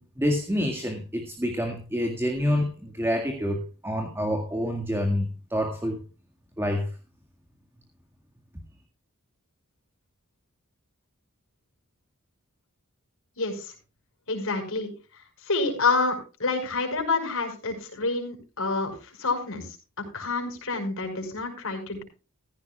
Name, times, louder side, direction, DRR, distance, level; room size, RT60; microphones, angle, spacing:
voice 1, 0.0-6.0 6.6-6.9, equal, 10° right, 3 dB, 1.8 m, -27 dB
voice 2, 13.4-13.7 14.3-14.9 15.5-22.0, left 3 dB, 65° left, 4 dB, 5.5 m, -28 dB
15.5 x 15.0 x 2.3 m, 0.33 s
head